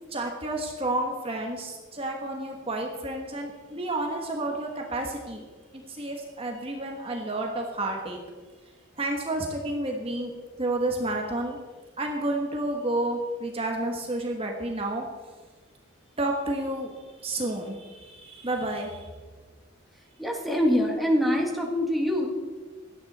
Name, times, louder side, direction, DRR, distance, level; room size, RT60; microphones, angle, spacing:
voice 1, 0.1-5.5 5.7-8.2 9.0-10.3 10.6-11.6 12.0-15.0 16.2-19.1, right 1 dB, 30° right, 1 dB, 1.4 m, -30 dB
voice 2, 20.2-22.3, equal, ahead, 1 dB, 1.8 m, -24 dB
17.0 x 12.0 x 4.2 m, 1.4 s
head